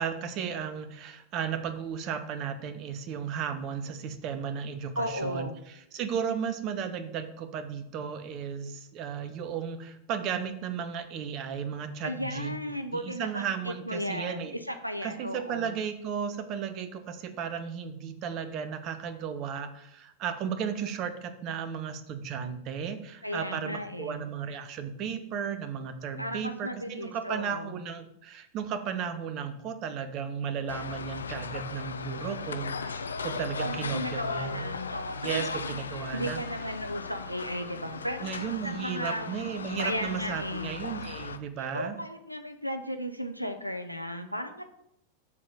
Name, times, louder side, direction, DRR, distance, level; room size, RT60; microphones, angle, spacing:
voice 1, 0.0-5.5 5.9-12.5 12.9-14.6 15.0-34.7 35.2-36.4 38.2-42.0, right 7 dB, 40° right, 10 dB, 0.8 m, -34 dB
voice 2, 5.0-5.6 12.0-15.7 23.2-24.3 26.2-27.8 33.6-35.8 36.1-39.3 39.8-40.7 41.6-44.6, equal, 90° right, 7 dB, 0.5 m, -35 dB
sound 1, 30.7-41.4, left 5 dB, 70° left, 0.4 m, -37 dB
7.5 x 4.0 x 6.2 m, 0.78 s
figure-of-eight pair, 90°, 0 cm